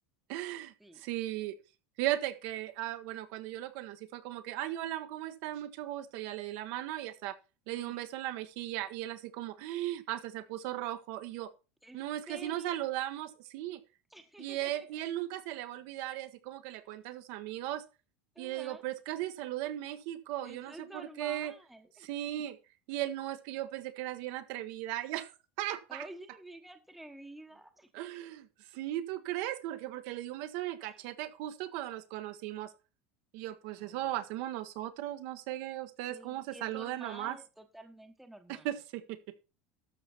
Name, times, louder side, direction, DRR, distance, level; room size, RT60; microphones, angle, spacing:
voice 1, 0.3-1.6 2.0-7.4 7.7-11.5 11.9-13.8 14.4-17.8 18.4-21.5 22.0-22.6 22.9-26.0 27.9-32.7 33.3-37.4 38.6-39.2, right 14 dB, 60° right, 9 dB, 1.1 m, -37 dB
voice 2, 7.7-8.1 11.8-12.9 14.1-14.9 16.9-17.0 18.3-18.8 20.4-22.4 25.9-28.1 30.8-31.0 33.8-34.2 36.1-38.7, right 1 dB, ahead, 7 dB, 1.1 m, -50 dB
12.5 x 6.7 x 4.3 m, 0.31 s
cardioid pair, 160°, 6 cm